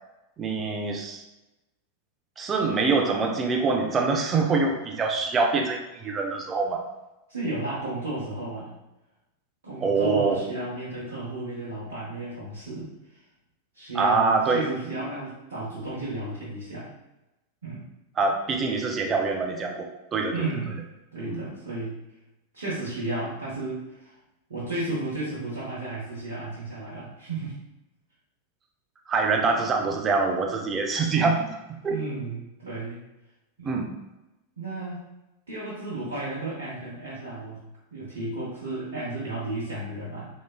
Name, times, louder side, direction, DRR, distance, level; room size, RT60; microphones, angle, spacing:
voice 1, 0.4-1.2 2.4-6.8 9.8-10.4 13.9-14.6 18.2-20.5 21.3-21.4 29.1-31.6 31.8-32.0 33.6-33.9, right 4 dB, 25° right, 2 dB, 0.4 m, -25 dB
voice 2, 7.3-8.7 9.6-13.2 13.7-16.9 17.6-17.9 20.3-20.8 21.1-22.0 22.5-24.2 24.5-27.6 31.9-33.0 33.6-33.9 34.6-35.0 35.5-37.6 37.9-40.3, right 2 dB, 65° right, -8 dB, 0.9 m, -33 dB
3.2 x 3.0 x 2.3 m, 0.98 s
figure-of-eight pair, 90°, 0 cm